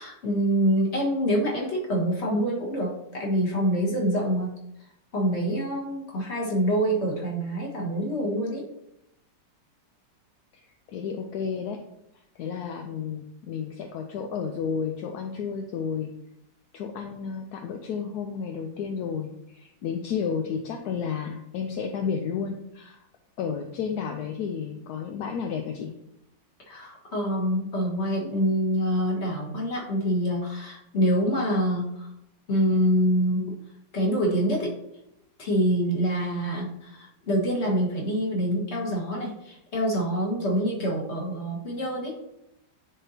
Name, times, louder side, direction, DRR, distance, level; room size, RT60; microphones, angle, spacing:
voice 1, 0.0-4.6 5.1-8.7 26.7-32.1 32.5-33.6 33.9-34.7 35.4-42.2, equal, 40° left, -3 dB, 1.8 m, -26 dB
voice 2, 10.9-11.8 12.4-16.1 16.7-23.0 23.4-25.9, left 6 dB, 70° left, 4 dB, 1.0 m, -32 dB
10.5 x 3.7 x 2.8 m, 0.83 s
omnidirectional pair, 1.9 m